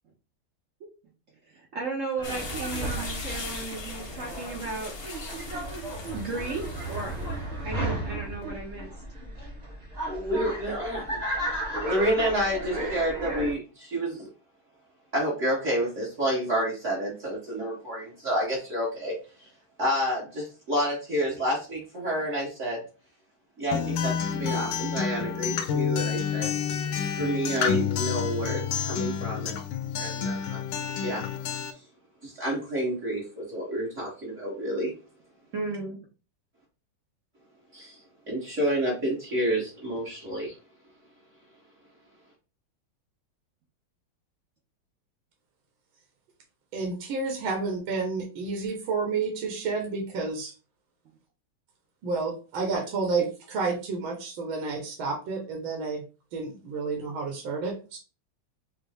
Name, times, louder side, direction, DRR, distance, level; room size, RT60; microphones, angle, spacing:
voice 1, 1.5-4.9 6.1-7.1 7.6-8.9 35.5-36.0, right 3 dB, 65° right, 0.7 m, -34 dB
sound 1, 2.2-7.3, left 4 dB, 45° left, 0.8 m, -40 dB
sound 2, 2.2-13.5, right 1 dB, 30° right, 0.8 m, -34 dB
voice 2, 10.1-11.2 11.9-14.3 15.1-19.1 19.8-22.8 23.6-26.5 27.2-29.6 30.0-30.6 31.0-31.2 32.2-34.9 37.7-37.9 38.3-40.5, equal, 45° right, 1.2 m, -29 dB
Acoustic guitar, 23.7-31.7, left 7 dB, 75° left, 1.2 m, -29 dB
voice 3, 46.7-50.5 52.0-56.0 56.3-58.0, right 4 dB, 80° right, 1.7 m, -30 dB
5.3 x 2.0 x 3.4 m
omnidirectional pair, 2.2 m